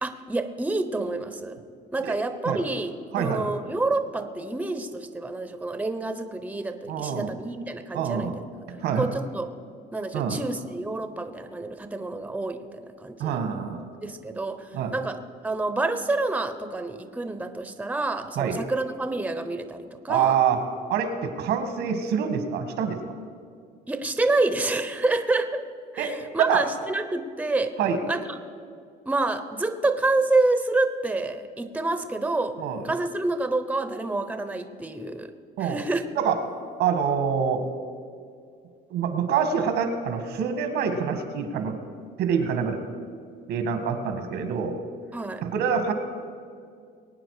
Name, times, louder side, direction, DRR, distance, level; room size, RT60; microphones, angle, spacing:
voice 1, 0.0-1.6 1.9-8.3 9.0-9.5 9.9-13.4 14.0-20.4 23.9-25.6 25.9-27.7 28.1-28.2 29.1-32.6 32.8-35.3 35.6-36.0 45.1-45.4, right 2 dB, 10° right, 9 dB, 0.8 m, -28 dB
voice 2, 3.1-3.5 6.9-7.3 7.9-8.4 8.8-9.1 10.1-10.4 13.2-13.8 14.7-14.9 18.3-18.6 20.1-20.6 20.9-23.0 26.0-26.1 26.4-26.6 27.8-28.0 32.6-32.8 35.6-35.8 36.1-36.4 36.8-37.7 38.9-41.8 42.2-42.8 43.5-44.8 45.4-45.9, right 7 dB, 85° right, 7 dB, 1.7 m, -26 dB
22.0 x 9.0 x 4.9 m, 2.2 s
cardioid pair, 110°, 17 cm